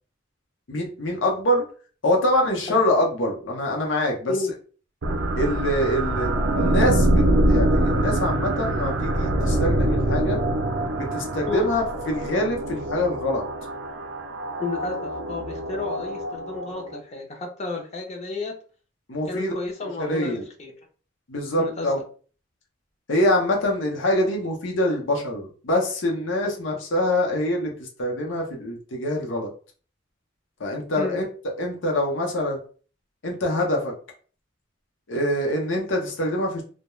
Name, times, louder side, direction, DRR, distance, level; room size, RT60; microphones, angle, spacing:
voice 1, 0.7-1.6 2.0-4.3 5.4-10.4 11.0-13.4 19.1-19.5 20.0-20.4 21.3-22.0 23.1-29.5 30.6-31.3 31.6-32.6 33.2-33.9 35.1-36.6, left 1 dB, 75° left, 0 dB, 0.7 m, -25 dB
sound 1, 5.0-17.0, right 1 dB, 75° right, 0.4 m, -24 dB
voice 2, 14.6-18.5 19.3-20.7 21.6-21.9 31.0-31.2, left 3 dB, 35° left, 1 dB, 0.5 m, -31 dB
2.2 x 2.1 x 3.0 m, 0.40 s
head